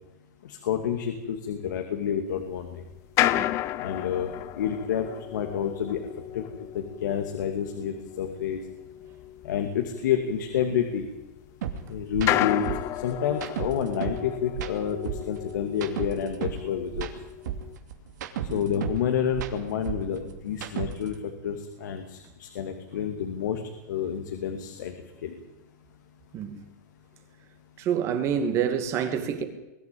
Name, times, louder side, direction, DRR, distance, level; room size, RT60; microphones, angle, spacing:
voice 1, 0.4-2.8 3.8-4.3 4.6-6.0 6.3-6.4 6.7-8.6 9.4-11.1 11.9-12.6 13.0-17.1 18.5-23.6 23.9-24.9 25.2-25.3, left 8 dB, 90° left, 2.5 m, -29 dB
sound 1, 2.4-11.8 12.2-17.8, left 14 dB, 30° left, 0.7 m, -33 dB
sound 2, 11.6-11.7 12.1-12.3 12.6-14.2 14.5-16.6 16.9-19.0 19.3-21.1, right 10 dB, 75° right, 2.8 m, -33 dB
voice 2, 27.8-29.4, right 8 dB, 30° right, 2.4 m, -27 dB
22.0 x 13.5 x 9.1 m
supercardioid pair, 165°, 10 cm